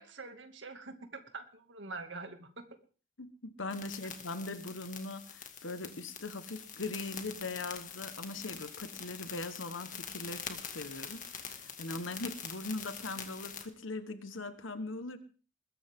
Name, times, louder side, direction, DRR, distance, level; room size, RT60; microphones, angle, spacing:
voice 1, 0.0-2.6, right 3 dB, 65° right, 6 dB, 2.3 m, -45 dB
voice 2, 3.2-15.2, left 2 dB, 75° left, 10 dB, 1.4 m, -40 dB
sound 1, 3.7-13.7, left 7 dB, 40° left, 2.1 m, -45 dB
21.0 x 15.5 x 3.7 m, 0.39 s
head